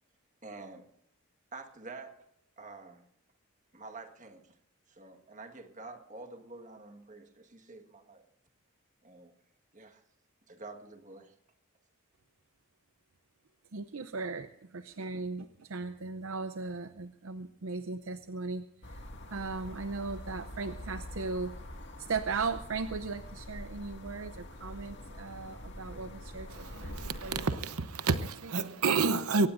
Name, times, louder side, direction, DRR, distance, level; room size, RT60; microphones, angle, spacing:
voice 1, 0.4-0.9 1.5-2.3 2.6-3.1 3.7-4.6 4.9-8.2 9.0-9.4 9.7-10.0 10.5-11.3, right 3 dB, 35° right, 1.7 m, -48 dB
voice 2, 13.7-21.5 22.0-27.5 28.4-28.5, right 4 dB, 65° right, 0.7 m, -38 dB
sound 1, 18.8-27.5, left 1 dB, 55° left, 2.1 m, -45 dB
voice 3, 26.5-29.5, right 4 dB, 90° right, 0.9 m, -30 dB
23.5 x 18.5 x 2.6 m
head